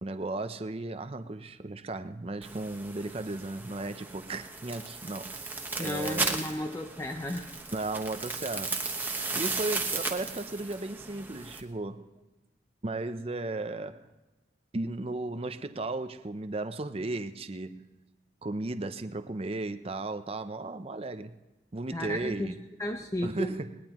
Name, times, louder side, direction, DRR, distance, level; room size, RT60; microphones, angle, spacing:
voice 1, 0.0-5.3 5.8-6.5 7.7-8.8 9.3-12.1 12.8-14.1 14.7-17.9 18.4-21.3 21.7-22.7 23.2-23.8, right 2 dB, 35° right, 10 dB, 0.6 m, -35 dB
sound 1, 2.4-11.6, right 3 dB, 10° right, 1.1 m, -36 dB
voice 2, 5.8-7.5 21.9-22.5 22.8-23.5, left 1 dB, 15° left, 5 dB, 0.6 m, -34 dB
20.5 x 19.5 x 3.0 m, 1.1 s
head